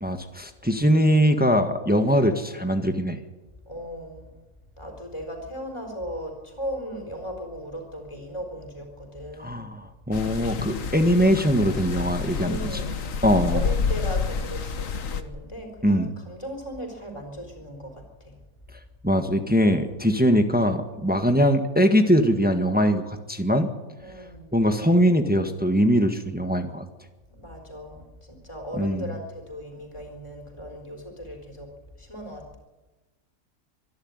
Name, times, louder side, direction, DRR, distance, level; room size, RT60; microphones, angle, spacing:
voice 1, 0.0-3.2 9.4-12.6 13.2-13.7 15.8-16.1 19.0-23.7 24.5-26.9 28.8-29.0, equal, 5° right, 6 dB, 1.4 m, -21 dB
voice 2, 3.7-4.4 4.8-9.6 12.4-13.3 13.5-18.4 24.0-24.6 27.3-32.6, equal, 20° left, 3 dB, 4.3 m, -37 dB
sound 1, 10.1-15.2, left 5 dB, 65° left, 1.6 m, -29 dB
25.0 x 11.5 x 9.6 m, 1.1 s
omnidirectional pair, 1.5 m